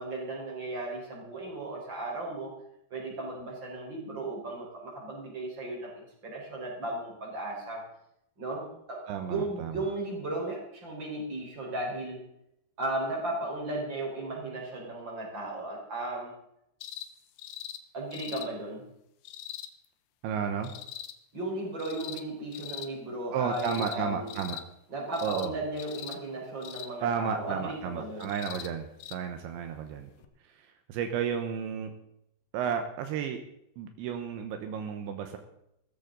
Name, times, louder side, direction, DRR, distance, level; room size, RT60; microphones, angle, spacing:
voice 1, 0.0-2.5 2.9-7.8 8.4-12.2 12.8-16.3 17.9-18.9 21.3-24.3 24.9-28.3, right 2 dB, 25° right, -1 dB, 4.8 m, -35 dB
voice 2, 9.1-9.9 20.2-20.7 23.3-24.6 25.2-25.5 27.0-30.1 30.4-31.9 32.5-33.4 33.8-35.4, right 7 dB, 80° right, 6 dB, 3.3 m, -33 dB
sound 1, 16.8-17.1 17.4-17.8 18.1-18.5 19.3-19.7 20.6-21.1 21.8-22.2 22.5-22.9 23.5-24.0 24.3-24.6 25.1-25.5 25.8-26.2 26.6-26.9 28.2-28.7 29.0-29.2 30.2-30.3, left 11 dB, 90° left, 3.3 m, -41 dB
17.0 x 14.5 x 4.0 m, 0.79 s
omnidirectional pair, 5.2 m